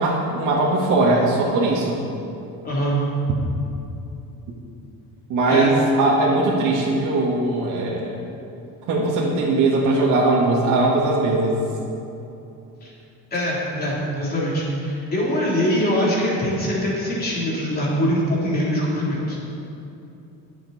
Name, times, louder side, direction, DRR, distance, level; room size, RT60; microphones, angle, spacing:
voice 1, 0.0-2.0 5.3-8.2 8.9-11.6, right 2 dB, 65° right, -5 dB, 1.9 m, -20 dB
voice 2, 2.6-3.0 5.5-5.7 12.8-12.9 13.3-19.4, equal, 30° left, -6 dB, 3.4 m, -23 dB
21.0 x 7.3 x 4.2 m, 2.8 s
cardioid pair, 145°, 33 cm